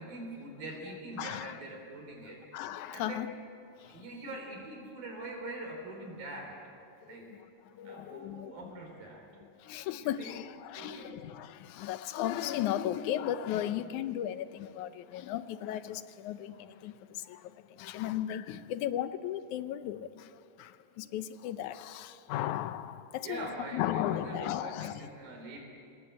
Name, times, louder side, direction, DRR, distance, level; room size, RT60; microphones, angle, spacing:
voice 1, 0.0-2.6 2.9-3.2 3.9-6.6 7.0-7.4 7.9-9.2 10.2-10.3 10.7-11.2 23.2-25.6, right 2 dB, 85° right, 5.8 m, -43 dB
voice 2, 1.2-1.6 2.3-3.3 3.8-4.3 7.0-8.5 9.6-25.1, left 12 dB, 75° left, 2.0 m, -36 dB
27.5 x 19.5 x 8.6 m
omnidirectional pair, 4.0 m